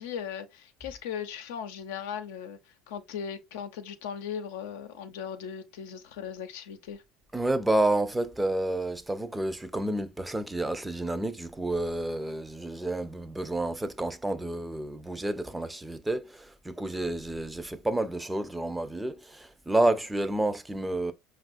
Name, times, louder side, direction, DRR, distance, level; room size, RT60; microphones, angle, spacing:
voice 1, 0.0-7.0, left 8 dB, 90° left, 0.6 m, -38 dB
voice 2, 7.3-21.1, right 1 dB, 10° right, 0.5 m, -30 dB
5.3 x 2.4 x 2.5 m
supercardioid pair, 105°, 0 cm